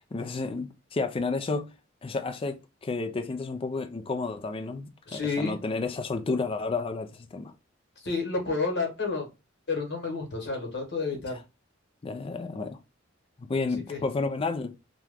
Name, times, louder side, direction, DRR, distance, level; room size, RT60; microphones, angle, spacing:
voice 1, 0.1-1.7 2.0-7.5 12.0-12.8 13.4-14.7, left 3 dB, 30° left, 0.4 m, -31 dB
voice 2, 5.1-5.6 8.0-9.3 9.7-11.4 13.9-14.0, left 4 dB, 60° left, 1.1 m, -30 dB
2.9 x 2.3 x 3.4 m
head